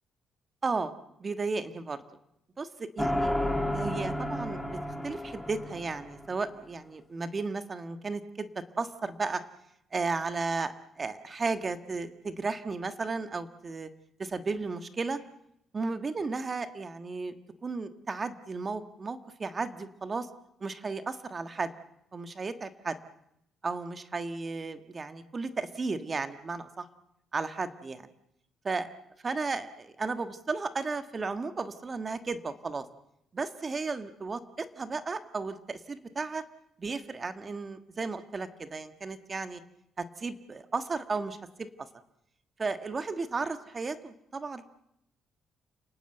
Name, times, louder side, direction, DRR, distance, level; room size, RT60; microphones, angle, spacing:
voice 1, 0.6-0.9 1.2-2.0 2.6-3.3 3.7-9.4 9.9-13.9 14.2-15.2 15.7-17.3 17.6-20.3 20.6-21.7 22.1-23.0 23.6-26.9 27.3-28.0 28.6-28.9 29.2-32.8 33.3-36.4 36.8-39.6 40.0-41.7 42.6-44.6, right 4 dB, 35° right, 10 dB, 1.6 m, -34 dB
sound 1, 3.0-6.4, left 1 dB, 5° left, 3.1 m, -32 dB
29.0 x 19.0 x 8.0 m, 0.80 s
cardioid pair, 90°, 0 cm